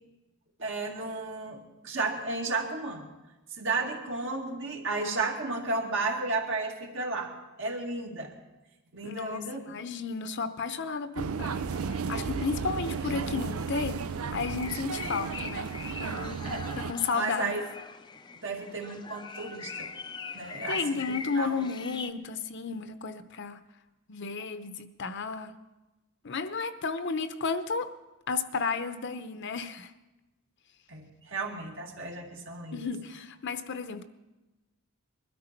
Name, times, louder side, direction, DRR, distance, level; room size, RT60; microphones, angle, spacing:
voice 1, 0.6-3.1 3.5-8.3 8.9-9.6 16.4-16.7 17.1-17.6 18.4-19.9 20.3-21.0 21.3-21.6 30.9-32.9, right 3 dB, 60° right, 1 dB, 2.2 m, -33 dB
voice 2, 9.0-9.4 9.7-14.0 14.3-15.7 16.0-16.4 16.8-17.5 20.7-23.6 24.1-25.5 26.2-27.9 28.3-29.9 32.7-34.0, left 5 dB, 55° left, 10 dB, 0.8 m, -33 dB
sound 1, 11.2-16.9, right 5 dB, 80° right, 0.5 m, -34 dB
sound 2, 11.7-22.1, left 5 dB, 20° left, 0.5 m, -43 dB
21.0 x 13.0 x 4.5 m, 1.1 s
head